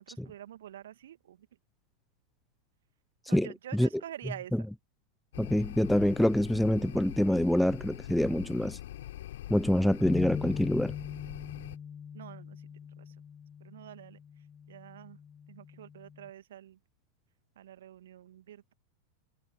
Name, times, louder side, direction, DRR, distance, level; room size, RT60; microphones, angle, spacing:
voice 1, 0.0-1.5 3.3-4.5 12.1-13.1 13.6-14.2 14.7-15.2 15.5-16.8 17.6-18.7, right 11 dB, 60° right, 2.5 m, -47 dB
voice 2, 3.3-3.9 5.4-8.8 9.5-10.9, left 1 dB, ahead, 0.3 m, -26 dB
sound 1, 5.3-11.8, left 13 dB, 55° left, 3.8 m, -43 dB
sound 2, 10.0-16.3, left 7 dB, 20° left, 1.3 m, -41 dB
figure-of-eight pair, 90°, 0 cm